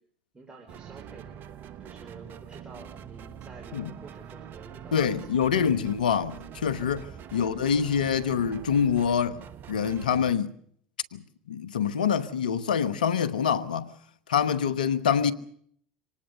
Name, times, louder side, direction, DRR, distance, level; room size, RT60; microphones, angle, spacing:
voice 1, 0.3-1.3 1.8-5.6 7.3-7.6 15.1-15.3, right 3 dB, 20° right, 4.5 m, -49 dB
sound 1, 0.7-10.3, right 9 dB, 45° right, 1.3 m, -44 dB
voice 2, 4.9-9.4 9.7-10.5 11.1-11.2 11.5-13.9 14.3-15.3, left 7 dB, 85° left, 1.3 m, -25 dB
25.5 x 19.0 x 6.6 m
hypercardioid pair, 80°, 4 cm